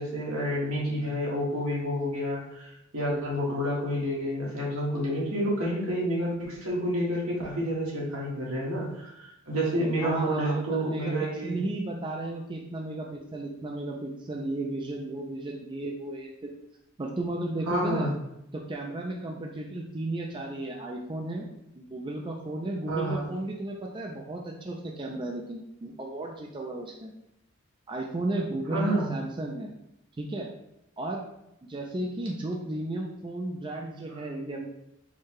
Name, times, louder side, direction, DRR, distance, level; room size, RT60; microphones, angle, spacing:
voice 1, 0.0-11.6 17.7-18.1 22.9-23.3 28.7-29.1, equal, 80° right, -4 dB, 1.6 m, -29 dB
voice 2, 10.0-16.5 17.0-18.1 18.5-21.5 21.8-27.1 27.9-29.7 30.2-30.5 31.0-31.2 31.7-34.7, right 2 dB, 25° right, 0 dB, 0.4 m, -34 dB
4.6 x 2.3 x 4.6 m, 0.83 s
head